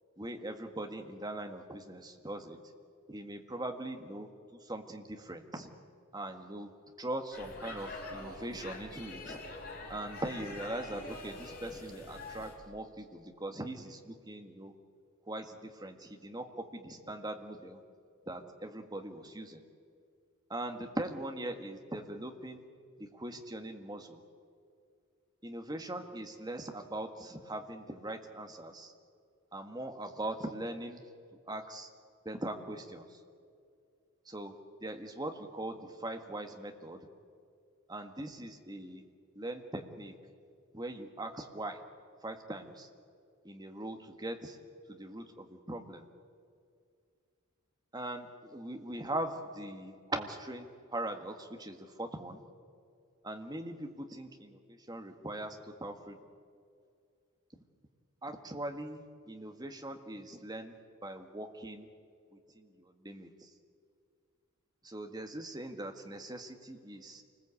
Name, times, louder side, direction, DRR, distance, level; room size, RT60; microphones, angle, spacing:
voice 1, 0.2-2.6 3.1-5.7 6.1-6.7 7.0-9.4 9.9-14.7 15.3-17.8 18.3-19.6 20.5-22.6 23.0-24.2 25.4-28.9 29.5-31.0 31.5-31.9 32.2-33.1 34.2-37.1 37.9-39.0 39.3-40.2 40.7-41.8 42.2-42.9 43.4-44.6 44.9-46.1 47.9-52.4 53.2-56.2 58.2-60.7 61.0-61.9 62.5-63.5 64.8-67.2, right 1 dB, 20° right, 5 dB, 1.7 m, -41 dB
Speech / Shout / Subway metro underground, 7.3-12.6, left 2 dB, 45° left, 4.3 m, -45 dB
27.5 x 20.0 x 8.5 m, 2.3 s
head